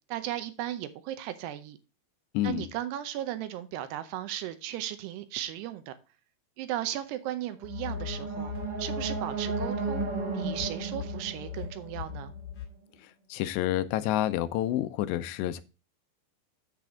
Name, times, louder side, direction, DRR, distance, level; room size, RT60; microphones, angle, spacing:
voice 1, 0.1-1.8 2.4-5.9 6.6-8.5 8.8-12.3, right 12 dB, 80° right, 2.8 m, -36 dB
voice 2, 2.3-2.7 13.3-15.6, left 13 dB, 85° left, 3.0 m, -28 dB
sound 1, 7.5-12.6, right 5 dB, 50° right, 1.7 m, -35 dB
sound 2, 7.6-12.7, left 8 dB, 55° left, 3.3 m, -39 dB
7.8 x 7.5 x 3.6 m
omnidirectional pair, 5.0 m